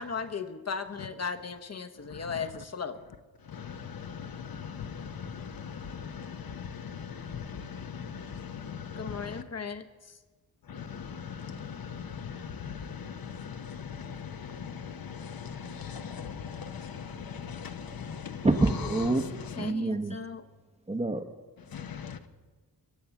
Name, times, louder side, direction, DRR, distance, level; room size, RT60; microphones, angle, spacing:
voice 1, 0.0-3.0 9.0-10.2 19.6-20.5, left 5 dB, 40° left, 1.0 m, -37 dB
voice 2, 3.5-9.4 10.7-18.5 19.1-19.7 21.7-22.2, left 7 dB, 70° left, 1.0 m, -40 dB
voice 3, 18.4-19.3 19.6-20.2 20.9-21.2, right 2 dB, 15° right, 0.9 m, -26 dB
22.5 x 8.6 x 7.1 m
wide cardioid pair, 115°, 37 cm